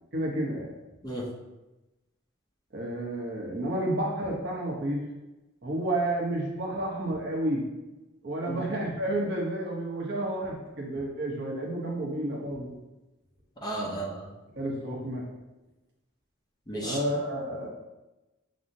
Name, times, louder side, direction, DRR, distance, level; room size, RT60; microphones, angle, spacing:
voice 1, 0.1-0.7 2.7-5.1 5.6-7.7 8.2-12.8 14.6-15.2 16.8-17.7, right 1 dB, 55° right, -2 dB, 0.8 m, -30 dB
voice 2, 13.6-14.2 16.7-17.0, right 1 dB, 20° left, -4 dB, 0.7 m, -33 dB
6.1 x 2.1 x 2.6 m, 1.0 s
head